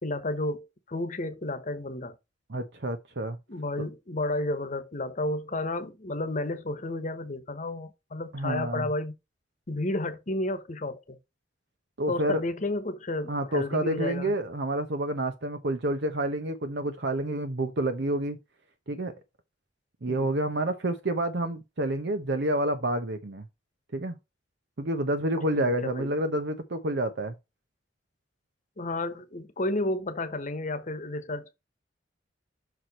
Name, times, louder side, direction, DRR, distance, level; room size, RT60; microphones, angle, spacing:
voice 1, 0.0-2.2 3.5-9.1 9.7-11.2 12.1-14.3 20.1-20.3 25.5-26.1 28.8-31.5, left 2 dB, 40° left, 1.1 m, -32 dB
voice 2, 2.5-3.4 8.3-8.9 12.0-12.4 13.3-18.4 18.9-19.1 20.0-23.4 23.9-24.2 24.8-27.3, right 1 dB, 65° right, 0.9 m, -29 dB
6.2 x 4.7 x 4.2 m
head